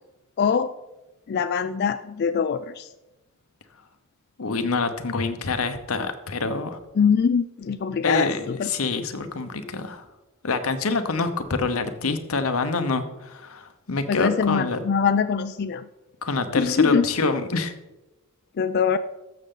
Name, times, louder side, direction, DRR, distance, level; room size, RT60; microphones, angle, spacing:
voice 1, 0.4-0.7 1.3-2.9 7.0-8.7 14.1-15.9 16.5-17.1 18.6-19.0, left 6 dB, 50° left, 11 dB, 0.3 m, -23 dB
voice 2, 4.4-6.8 8.0-10.0 10.4-14.8 16.2-17.7, left 3 dB, 90° left, 8 dB, 0.9 m, -26 dB
13.5 x 6.6 x 3.8 m, 1.0 s
head